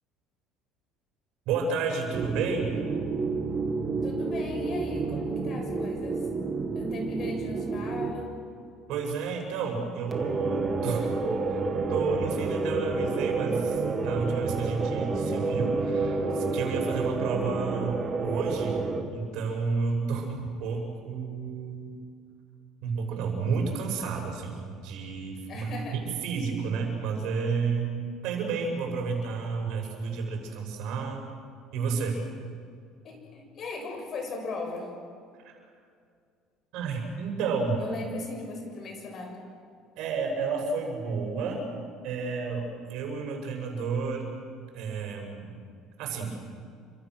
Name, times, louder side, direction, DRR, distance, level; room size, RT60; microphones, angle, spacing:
voice 1, 1.5-2.8 8.9-11.2 11.5-11.6 11.9-18.8 19.1-22.0 22.8-28.0 28.2-31.3 31.7-32.2 36.7-37.8 40.0-41.6 42.0-44.3 44.7-45.6 46.0-46.3, right 5 dB, 65° right, 2 dB, 7.0 m, -31 dB
sound 1, 2.1-8.1 10.1-19.0, right 3 dB, 25° right, 2.1 m, -29 dB
voice 2, 4.0-6.2 6.7-8.3 25.5-26.2 33.0-34.9 37.8-39.4, left 2 dB, 35° left, 3 dB, 7.0 m, -37 dB
29.5 x 26.0 x 6.6 m, 2.2 s
cardioid pair, 160°, 0 cm